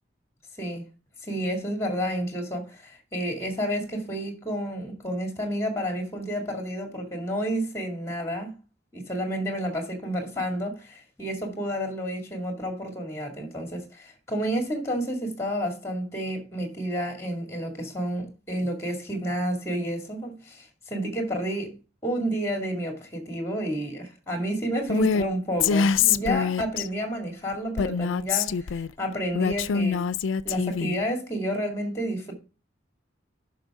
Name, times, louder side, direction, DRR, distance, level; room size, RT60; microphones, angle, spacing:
voice 1, 1.2-8.5 8.9-21.8 22.0-30.0 30.4-32.3, equal, 15° left, 2.2 m, -30 dB
Female speech woman speaking, 24.9-25.3 25.6-26.9 27.8-28.9 29.4-31.0, left 6 dB, 85° left, 0.4 m, -24 dB
11.0 x 5.8 x 3.6 m
head